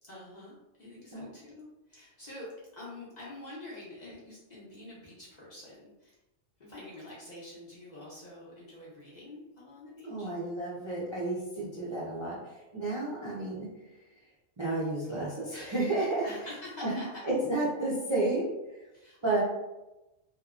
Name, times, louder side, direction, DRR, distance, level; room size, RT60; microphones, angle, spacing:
voice 1, 0.0-2.5 2.7-6.1 6.6-10.3 11.8-12.1 16.2-17.3 18.9-19.4, left 1 dB, 45° left, -7 dB, 0.6 m, -47 dB
voice 2, 10.0-12.4 12.7-13.7 14.6-16.2 16.8-17.0 17.2-18.5 19.2-19.4, right 2 dB, 40° right, -8 dB, 0.4 m, -31 dB
2.9 x 2.0 x 2.4 m, 0.99 s
omnidirectional pair, 1.3 m